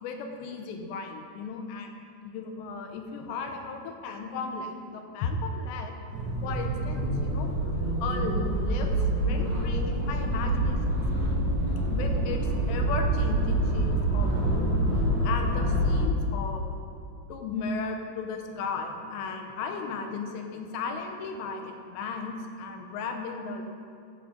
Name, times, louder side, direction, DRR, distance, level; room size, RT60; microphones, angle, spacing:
voice 1, 0.0-2.0 2.2-5.9 6.4-11.0 11.9-16.7 17.3-23.6, left 4 dB, 85° left, 4 dB, 3.0 m, -35 dB
sound 1, 6.1-16.0, right 1 dB, 60° right, 3.4 m, -26 dB
12.5 x 8.5 x 4.0 m, 2.5 s
omnidirectional pair, 5.0 m